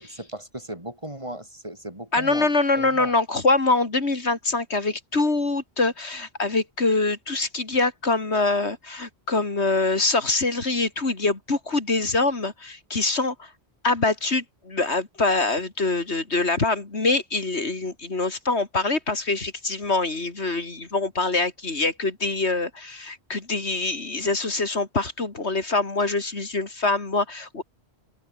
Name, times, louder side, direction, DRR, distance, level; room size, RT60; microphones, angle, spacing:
voice 1, 0.0-2.5 2.8-3.1, right 1 dB, 25° right, 6.7 m, -36 dB
voice 2, 2.1-13.5 13.8-27.6, left 3 dB, 75° left, 3.5 m, -24 dB
open air
omnidirectional pair, 1.1 m